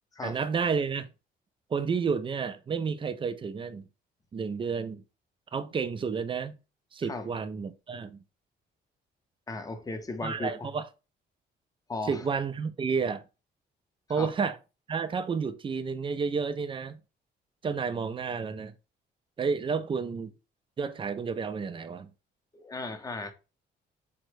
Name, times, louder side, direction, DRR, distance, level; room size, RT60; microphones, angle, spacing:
voice 1, 0.2-1.1 1.7-3.8 4.3-5.0 5.5-6.6 6.9-8.2 10.2-10.8 12.1-13.2 14.1-14.6 14.9-17.0 17.6-18.7 19.4-20.3 20.8-22.1, right 5 dB, 25° right, 0.4 m, -31 dB
voice 2, 9.5-10.7 11.9-12.2 14.2-14.3 22.5-23.3, left 3 dB, 20° left, 0.6 m, -36 dB
3.4 x 2.1 x 3.2 m
cardioid pair, 90°, 20 cm